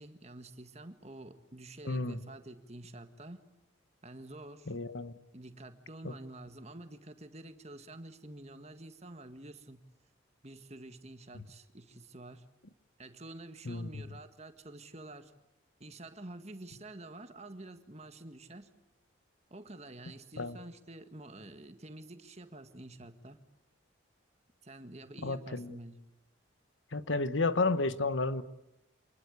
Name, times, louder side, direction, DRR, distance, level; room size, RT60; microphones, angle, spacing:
voice 1, 0.0-3.4 4.0-4.7 5.3-9.8 10.4-12.5 13.0-15.3 15.8-18.7 19.5-23.4 24.6-26.0, right 2 dB, 35° right, 9 dB, 1.8 m, -48 dB
voice 2, 1.8-2.2 4.7-5.1 6.0-6.1 11.3-11.4 13.6-13.9 20.4-20.6 25.2-25.8 26.9-28.4, left 3 dB, 75° left, 13 dB, 1.2 m, -32 dB
27.5 x 20.5 x 8.3 m, 0.87 s
head